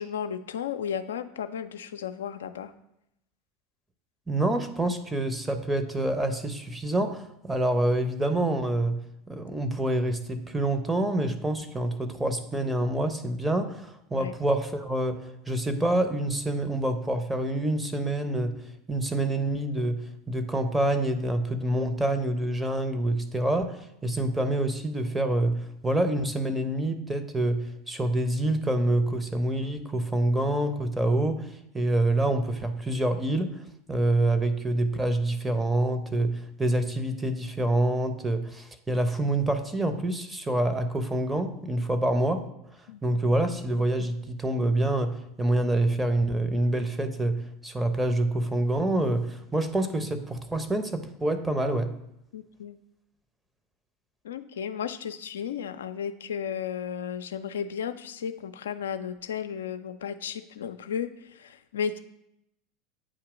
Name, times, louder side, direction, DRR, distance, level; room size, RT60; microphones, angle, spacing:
voice 1, 0.0-2.7 14.2-14.3 42.9-43.2 52.3-52.8 54.2-62.0, left 8 dB, 80° left, 9 dB, 0.4 m, -34 dB
voice 2, 4.3-9.0 9.3-15.2 15.5-20.0 20.3-33.5 33.9-42.4 43.0-51.9, right 1 dB, 10° right, 8 dB, 0.8 m, -27 dB
8.6 x 2.9 x 4.9 m, 0.82 s
hypercardioid pair, 85°, 0 cm